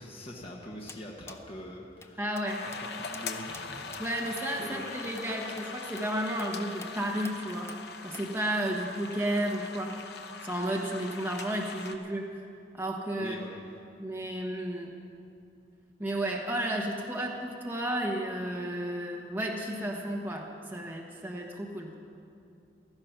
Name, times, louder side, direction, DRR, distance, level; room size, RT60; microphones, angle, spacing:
voice 1, 0.0-2.2 2.6-3.9 4.2-4.8 13.2-13.6, equal, 30° left, -1 dB, 1.3 m, -43 dB
sound 1, 0.9-1.0 1.3-1.4 2.0-2.1 2.4-2.5 2.7-2.8 3.1-3.3 3.5-3.7 3.9-4.0 4.4-4.5 5.2-5.3 5.6-5.7 6.0-6.1 6.4-6.5 6.8-6.9 7.2-7.4 7.7-7.8 8.1-8.3, left 3 dB, 15° left, 0.5 m, -47 dB
voice 2, 2.2-2.6 4.0-7.7 8.0-10.0 10.4-12.5 12.7-13.4 14.0-15.0 16.0-21.9, right 1 dB, 10° right, -1 dB, 1.2 m, -32 dB
sound 2, 2.5-12.0, left 4 dB, 60° left, 0.8 m, -42 dB
15.5 x 13.5 x 5.9 m, 2.5 s
head